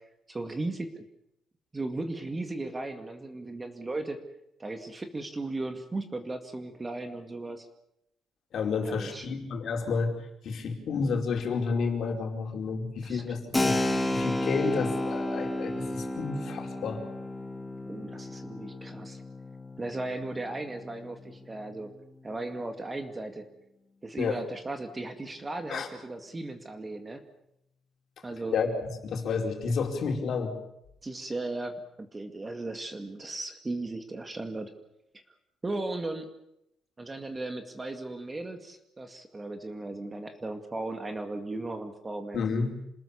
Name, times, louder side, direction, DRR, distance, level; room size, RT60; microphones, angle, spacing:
voice 1, 0.3-1.0 1.7-4.2 4.6-7.7 8.8-9.4 13.0-13.2 17.9-19.2 19.8-21.9 22.2-23.5 24.0-27.2 28.2-28.5 31.0-34.7 35.6-36.3 37.0-42.6, right 2 dB, 15° right, 7 dB, 2.1 m, -36 dB
voice 2, 8.5-10.2 10.4-13.8 14.1-17.0 24.2-24.4 25.7-25.9 28.5-30.5 42.3-42.8, left 5 dB, 50° left, 3 dB, 4.6 m, -30 dB
Keyboard (musical), 13.5-21.9, left 1 dB, 10° left, 2.1 m, -32 dB
27.5 x 20.0 x 7.2 m, 0.80 s
cardioid pair, 155°, 0 cm